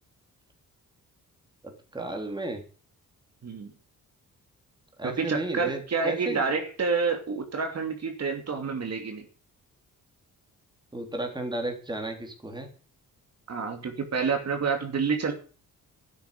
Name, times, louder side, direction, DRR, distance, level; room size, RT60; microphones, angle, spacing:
voice 1, 1.9-2.6 5.0-6.5 10.9-12.7, right 2 dB, 15° right, 3 dB, 3.4 m, -33 dB
voice 2, 5.0-9.2 13.5-15.3, right 5 dB, 50° right, 4 dB, 2.8 m, -28 dB
12.0 x 9.4 x 8.4 m, 0.39 s
cardioid pair, 120°, 34 cm